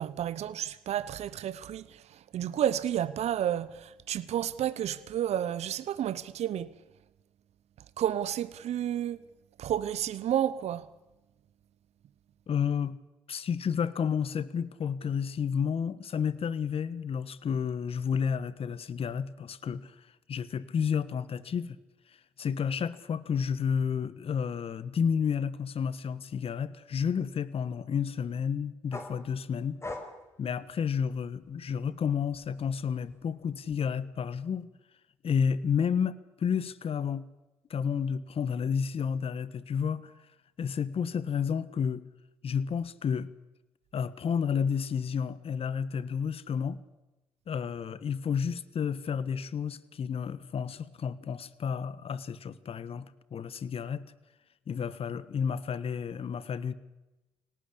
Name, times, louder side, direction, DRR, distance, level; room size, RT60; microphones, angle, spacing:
voice 1, 0.0-6.8 8.0-9.2 9.6-10.9, right 10 dB, 65° right, 0.9 m, -31 dB
voice 2, 12.5-13.0 13.3-19.9 20.3-21.8 22.4-29.8 30.4-34.7 35.2-37.2 37.7-40.1 40.6-42.0 42.4-43.3 43.9-46.8 47.5-53.0 53.3-54.0 54.7-56.7, left 7 dB, 55° left, 1.4 m, -31 dB
sound 1, 28.9-31.5 31.9-33.9, left 2 dB, 25° left, 5.1 m, -44 dB
24.0 x 18.5 x 8.6 m
hypercardioid pair, 50°, 12 cm